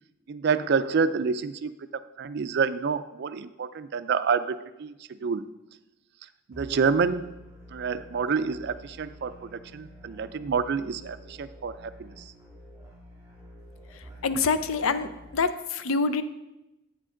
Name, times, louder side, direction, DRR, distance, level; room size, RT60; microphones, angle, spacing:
voice 1, 0.3-1.9 2.2-5.5 6.5-7.4 7.7-12.2, right 5 dB, 55° right, 13 dB, 0.4 m, -28 dB
sound 1, 6.5-15.3, equal, 15° right, 2.7 m, -49 dB
voice 2, 14.2-16.2, left 4 dB, 85° left, 12 dB, 0.5 m, -26 dB
8.5 x 7.4 x 3.7 m, 0.97 s
head